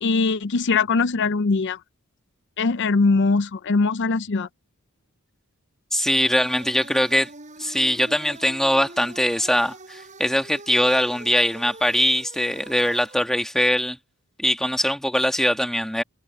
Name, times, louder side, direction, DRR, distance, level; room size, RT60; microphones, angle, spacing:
voice 1, 0.0-1.8 2.6-4.5, left 4 dB, 55° left, 0.5 m, -21 dB
voice 2, 5.9-7.3 7.6-14.0 14.4-16.0, equal, ahead, 1.5 m, -22 dB
sound 1, 6.2-13.6, right 2 dB, 35° right, 7.0 m, -44 dB
head